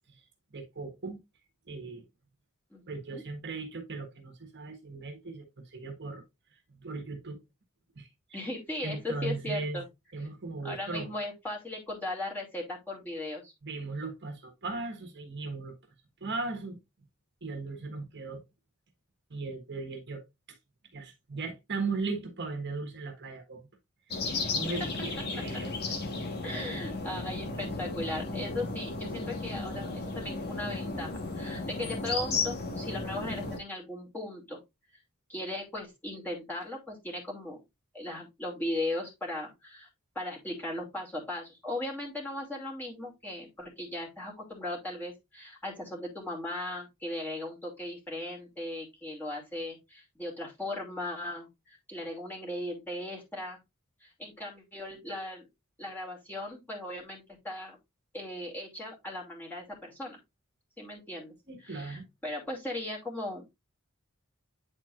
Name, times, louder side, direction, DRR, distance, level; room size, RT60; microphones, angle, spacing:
voice 1, 0.5-1.2 1.7-2.1 2.9-6.2 6.5-7.4 7.9-8.4 8.8-9.8 10.1-11.1 13.6-15.7 16.2-16.8 17.4-18.4 19.3-20.2 20.5-20.6 20.9-23.7 24.1-24.2 24.4-25.7 26.6-26.7 61.5-62.1, right 3 dB, 55° right, 1.5 m, -37 dB
voice 2, 8.3-9.9 10.6-13.5 24.2-24.5 26.4-34.6 35.3-37.6 37.9-39.9 40.1-53.6 54.0-55.5 55.8-57.8 58.1-60.2 60.8-61.3 61.6-63.5, left 1 dB, 10° left, 2.5 m, -38 dB
sound 1, 24.1-33.6, left 3 dB, 50° left, 1.4 m, -34 dB
9.7 x 4.4 x 2.5 m
head